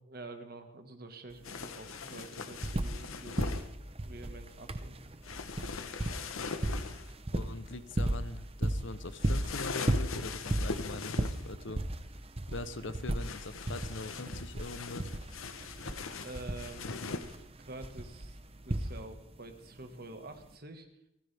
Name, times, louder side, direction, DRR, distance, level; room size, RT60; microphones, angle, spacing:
voice 1, 0.1-3.6 4.0-5.0 15.6-15.7 16.2-17.1 17.6-18.4 18.6-20.9, right 2 dB, 45° right, 6 dB, 1.6 m, -47 dB
sound 1, 1.3-1.4 1.7-3.1 3.4-19.3 20.4-20.5, right 1 dB, 30° right, 0.8 m, -35 dB
sound 2, 1.4-3.7 5.2-7.1 9.2-11.5 13.2-17.4, left 4 dB, 85° left, 1.0 m, -41 dB
voice 2, 7.3-11.8 12.5-15.1, left 2 dB, 60° left, 13 dB, 0.8 m, -42 dB
28.5 x 10.0 x 3.5 m, 0.82 s
head